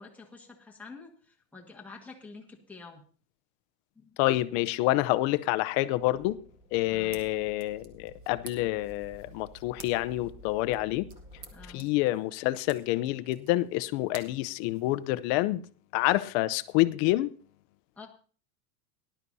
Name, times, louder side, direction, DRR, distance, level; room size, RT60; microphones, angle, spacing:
voice 1, 0.0-3.0 3.9-4.2 6.9-7.2 11.5-11.9 17.9-18.1, left 3 dB, 5° left, 1.5 m, -48 dB
voice 2, 4.2-6.4 6.7-11.1 11.7-15.6 15.9-17.3, left 17 dB, 45° left, 0.6 m, -27 dB
sound 1, 5.9-11.8, equal, 15° right, 1.8 m, -52 dB
sound 2, 6.8-15.4, right 5 dB, 30° right, 1.3 m, -53 dB
18.5 x 11.5 x 2.7 m
supercardioid pair, 155°, 44 cm